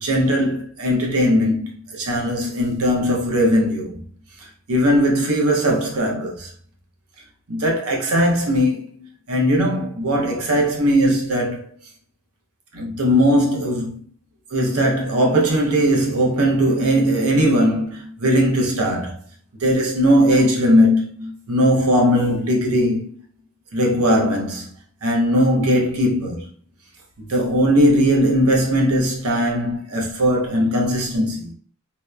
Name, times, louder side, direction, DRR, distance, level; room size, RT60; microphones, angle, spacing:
voice 1, 0.0-4.0 4.4-6.5 7.5-8.9 9.3-11.7 12.7-14.0 14.5-19.2 19.6-23.1 23.7-24.7 25.0-26.5 27.2-31.5, equal, 85° right, 0.7 m, -19 dB
2.7 x 2.0 x 2.3 m
head